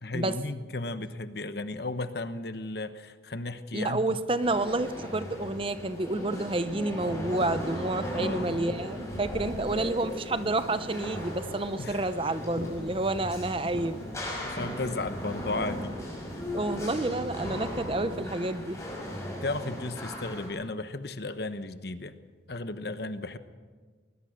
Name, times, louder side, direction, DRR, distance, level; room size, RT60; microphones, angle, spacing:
voice 1, 0.0-4.0 8.1-8.5 11.8-12.0 14.4-15.9 19.4-22.1 22.5-23.4, left 2 dB, 55° left, 11 dB, 1.1 m, -34 dB
voice 2, 3.7-14.0 16.5-18.8, right 2 dB, 30° right, 12 dB, 0.8 m, -29 dB
sound 1, 4.4-20.5, equal, 15° left, 6.0 m, -37 dB
Fireworks, 10.3-15.8, equal, 60° right, 6.2 m, -46 dB
20.5 x 20.5 x 6.6 m, 1.4 s
head